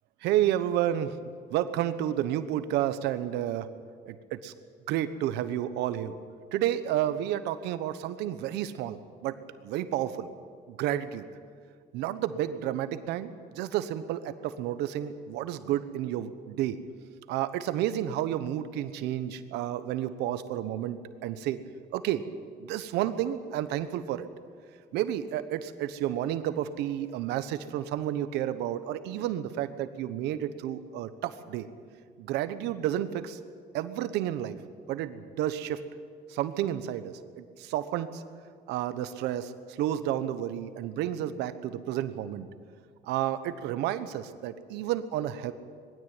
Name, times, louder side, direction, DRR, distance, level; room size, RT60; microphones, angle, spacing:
voice 1, 0.2-1.2 1.5-3.7 4.1-4.5 4.9-6.2 6.5-9.3 9.6-10.3 10.7-11.3 11.9-16.8 17.3-21.6 21.9-22.2 22.6-24.3 24.9-31.7 32.2-33.4 33.7-34.6 34.9-35.8 36.3-38.2 38.7-39.5 39.8-42.5 43.0-45.5, right 12 dB, 90° right, 12 dB, 1.2 m, -31 dB
20.5 x 16.0 x 9.1 m, 2.1 s
cardioid pair, 110°, 17 cm